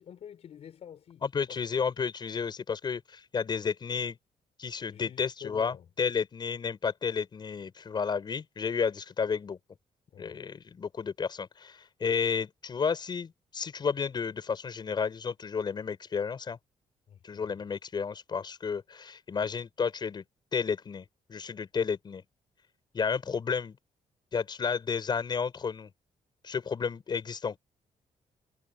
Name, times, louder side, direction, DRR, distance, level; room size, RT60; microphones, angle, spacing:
voice 1, 0.0-1.2 4.9-5.8 10.1-10.4 17.1-17.6, left 9 dB, 55° left, 5.0 m, -48 dB
voice 2, 1.2-4.2 4.6-9.6 10.2-16.6 17.2-20.2 20.5-22.2 22.9-23.8 24.3-25.9 26.4-27.6, left 6 dB, 35° left, 6.6 m, -32 dB
cardioid pair, 155°, 13 cm